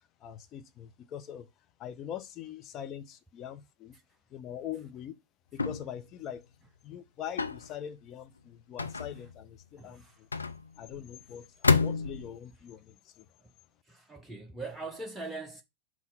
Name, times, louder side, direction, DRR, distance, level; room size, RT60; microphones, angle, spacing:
voice 1, 0.2-1.5 1.8-4.0 4.3-5.1 5.5-6.5 6.8-10.3 10.8-13.3, left 9 dB, 35° left, 0.8 m, -42 dB
sound 1, 5.6-6.0 7.4-7.7 8.8-9.4 10.3-11.0 11.6-12.4, left 4 dB, 75° left, 0.5 m, -28 dB
voice 2, 8.8-9.3 9.8-10.2 11.0-11.3 13.4-13.5 13.8-15.6, right 3 dB, 5° right, 0.7 m, -43 dB
5.7 x 3.1 x 5.6 m
figure-of-eight pair, 90°, 0 cm